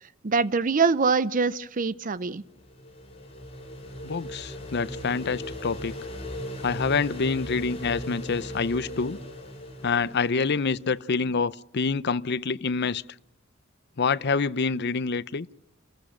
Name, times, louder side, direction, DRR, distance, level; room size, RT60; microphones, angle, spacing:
voice 1, 0.2-2.4, right 4 dB, 40° right, 0.7 m, -24 dB
sound 1, 2.3-11.1, equal, 30° left, 6.0 m, -38 dB
voice 2, 4.0-5.9 6.6-9.2 9.8-13.0 14.0-15.5, left 4 dB, 55° left, 0.7 m, -26 dB
28.5 x 14.5 x 6.5 m
head